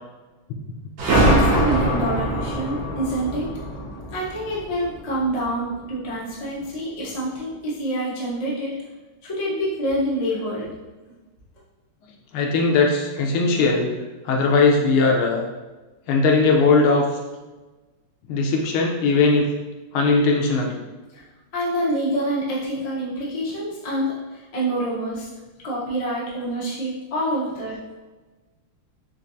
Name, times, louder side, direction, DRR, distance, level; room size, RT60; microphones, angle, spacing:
sound 1, 1.0-5.4, right 1 dB, 70° right, 1.7 m, -22 dB
voice 1, 1.1-3.5 4.1-8.7 9.2-10.7 21.1-21.2 21.5-25.3 25.6-27.8, right 1 dB, 40° left, -7 dB, 0.5 m, -26 dB
voice 2, 12.3-13.9 14.2-15.4 16.1-17.1 18.3-19.5 19.9-20.8, left 3 dB, 85° left, 1 dB, 1.5 m, -19 dB
4.4 x 2.9 x 2.6 m, 1.2 s
omnidirectional pair, 2.3 m